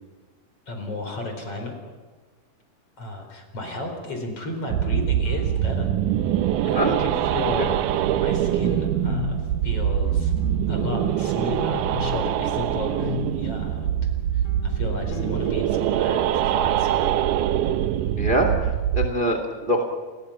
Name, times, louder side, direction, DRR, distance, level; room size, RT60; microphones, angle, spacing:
voice 1, 0.7-1.7 3.0-5.9 6.6-7.7 8.1-9.4 9.6-10.3 10.7-13.9 14.3-17.1, left 2 dB, 35° left, 4 dB, 5.2 m, -33 dB
sound 1, 4.7-19.1, right 11 dB, 75° right, 2.0 m, -24 dB
sound 2, 5.1-15.5, left 4 dB, 80° left, 4.8 m, -37 dB
voice 2, 18.1-19.8, right 1 dB, 15° right, 5 dB, 2.1 m, -24 dB
29.5 x 21.5 x 5.8 m, 1.3 s
omnidirectional pair, 4.5 m